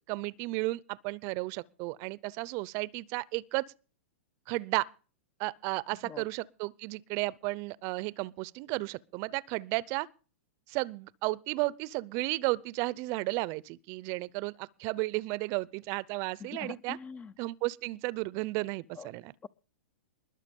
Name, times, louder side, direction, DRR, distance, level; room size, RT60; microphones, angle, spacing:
voice 1, 0.1-3.7 4.5-4.9 5.4-10.1 10.7-17.0 17.4-19.3, right 22 dB, 45° right, 0.6 m, -33 dB
voice 2, 16.5-17.3 18.9-19.1, left 5 dB, 20° left, 0.6 m, -43 dB
20.5 x 7.3 x 5.3 m
hypercardioid pair, 120°, 7 cm